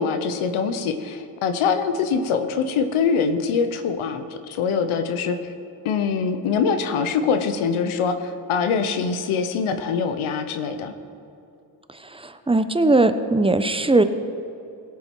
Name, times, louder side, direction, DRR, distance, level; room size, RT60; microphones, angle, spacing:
voice 1, 0.0-5.4 5.8-10.9, left 5 dB, 90° left, 8 dB, 0.8 m, -23 dB
voice 2, 12.1-14.0, right 2 dB, 10° right, 10 dB, 0.8 m, -19 dB
17.0 x 7.2 x 4.6 m, 2.8 s
supercardioid pair, 40°, 48 cm